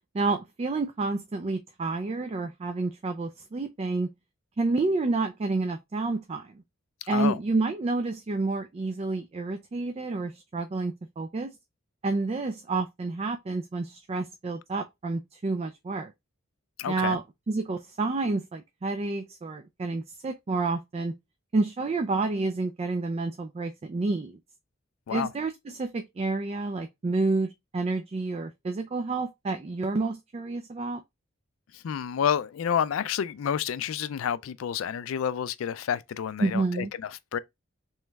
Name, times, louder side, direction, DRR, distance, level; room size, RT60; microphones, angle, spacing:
voice 1, 0.1-4.1 4.6-6.5 7.1-11.5 12.0-16.1 16.9-21.1 21.5-24.4 25.1-31.0 36.4-36.9, right 3 dB, 30° right, 0.4 m, -29 dB
voice 2, 16.8-17.2 25.1-25.3 31.7-37.4, left 8 dB, 80° left, 0.4 m, -29 dB
3.3 x 3.1 x 3.3 m
head